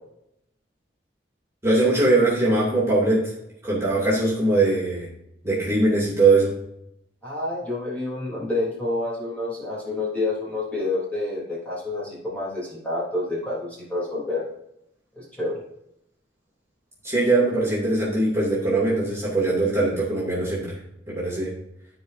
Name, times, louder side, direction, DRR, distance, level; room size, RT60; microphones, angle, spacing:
voice 1, 1.6-3.3 3.6-5.1 5.4-6.5 17.0-20.8 21.1-21.5, right 2 dB, 15° right, -8 dB, 2.7 m, -21 dB
voice 2, 7.2-14.4 15.1-15.6, left 2 dB, 10° left, -7 dB, 3.3 m, -28 dB
14.5 x 4.9 x 2.7 m, 0.79 s
head